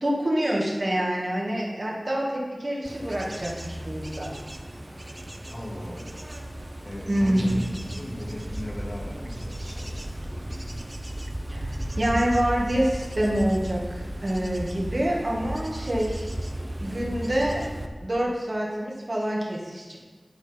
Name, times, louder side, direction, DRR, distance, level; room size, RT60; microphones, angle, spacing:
voice 1, 0.0-4.3 7.1-7.5 11.5-11.7 12.0-16.3 16.8-17.6 18.0-20.0, right 1 dB, 55° right, -3 dB, 1.8 m, -26 dB
Bird / Insect / Wind, 2.8-17.9, right 1 dB, 25° right, 0.7 m, -35 dB
voice 2, 5.5-6.3 6.8-9.9, equal, 60° left, -4 dB, 2.2 m, -36 dB
11.0 x 3.9 x 5.2 m, 1.4 s
wide cardioid pair, 45°, 0 cm